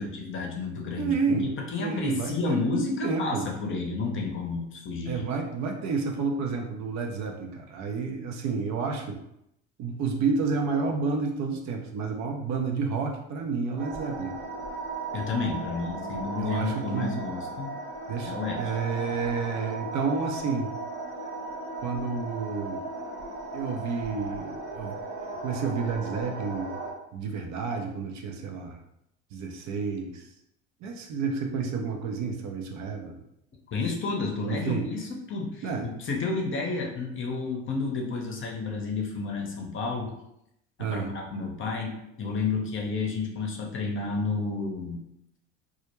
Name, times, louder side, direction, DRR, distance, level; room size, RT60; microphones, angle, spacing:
voice 1, 0.0-5.3 15.1-17.7 18.2-18.6 33.7-40.1 40.8-45.0, left 4 dB, 35° left, 0 dB, 0.7 m, -31 dB
voice 2, 1.0-1.5 1.8-3.5 5.1-9.2 9.8-14.4 16.4-17.1 18.1-20.7 21.8-22.8 23.5-25.0 25.4-26.8 27.1-28.8 29.3-30.2 30.8-33.2 34.4-34.9 35.6-35.9 40.8-41.1, right 5 dB, 55° right, 2 dB, 0.6 m, -30 dB
sound 1, 13.8-26.9, right 2 dB, 90° right, 0.7 m, -36 dB
2.3 x 2.0 x 3.0 m, 0.80 s
hypercardioid pair, 75°, 35 cm